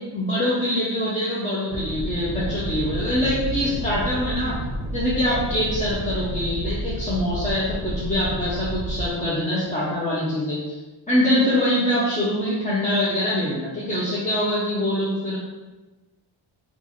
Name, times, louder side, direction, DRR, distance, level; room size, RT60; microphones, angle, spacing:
voice 1, 0.1-4.5 4.9-10.7 11.1-15.4, left 1 dB, 15° left, -8 dB, 0.4 m, -24 dB
sound 1, 1.7-9.1, right 1 dB, 35° right, 0.6 m, -30 dB
2.8 x 2.4 x 3.8 m, 1.1 s
wide cardioid pair, 165°, 49 cm